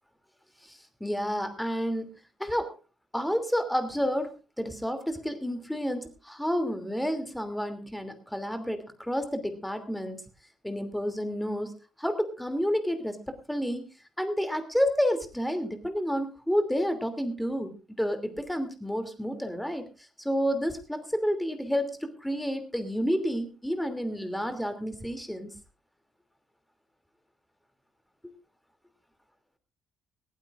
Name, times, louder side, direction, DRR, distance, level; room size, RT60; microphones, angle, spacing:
voice 1, 0.7-2.1 2.4-2.7 3.1-4.3 4.6-10.2 10.6-13.2 13.5-13.8 14.2-19.9 20.2-25.5 28.2-28.3, equal, 5° left, 9 dB, 2.8 m, -30 dB
19.5 x 17.5 x 2.5 m, 0.32 s
figure-of-eight pair, 45°, 0 cm